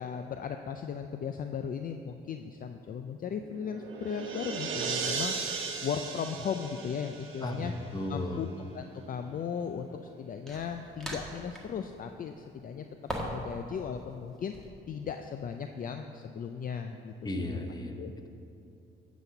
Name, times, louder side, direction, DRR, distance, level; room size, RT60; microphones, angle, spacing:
voice 1, 0.0-7.7 8.1-8.5 8.7-9.9 10.2-12.9 13.2-14.5 14.9-17.6 18.0-18.1, left 7 dB, 45° left, 6 dB, 0.4 m, -37 dB
sound 1, 3.4-8.0, right 5 dB, 80° right, 1.0 m, -36 dB
voice 2, 7.4-8.4 17.2-18.0, left 1 dB, 20° left, 5 dB, 1.0 m, -34 dB
sound 2, 8.1-8.3 10.5-11.8 13.1-13.6 13.8-14.7, equal, ahead, 1.5 m, -39 dB
11.0 x 4.2 x 7.0 m, 2.9 s
cardioid pair, 90°, 20 cm